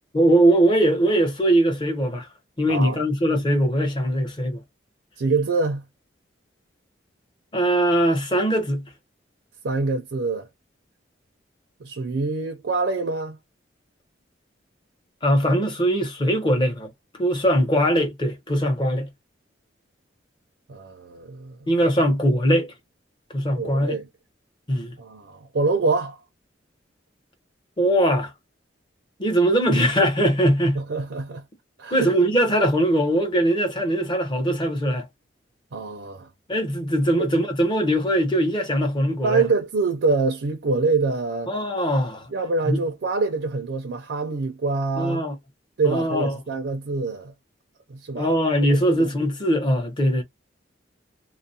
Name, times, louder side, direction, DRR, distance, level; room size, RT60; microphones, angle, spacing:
voice 1, 0.1-2.3 2.6-4.6 7.5-8.8 15.2-16.9 17.2-19.1 21.7-22.7 23.3-24.0 24.7-24.9 27.8-28.3 29.2-30.8 31.9-35.1 36.5-39.4 41.5-42.3 42.6-42.8 45.0-45.4 45.8-46.4 48.2-50.2, right 1 dB, 25° left, 0.8 m, -21 dB
voice 2, 2.7-3.0 5.2-5.8 9.6-10.5 11.8-13.4 20.7-21.6 23.5-24.1 25.0-26.2 30.8-31.4 31.8-32.1 35.7-36.3 37.2-37.3 39.2-41.5 42.3-45.2 45.8-47.3 47.9-48.3 48.7-49.1, right 3 dB, 75° right, 0.5 m, -25 dB
2.4 x 2.0 x 2.7 m
head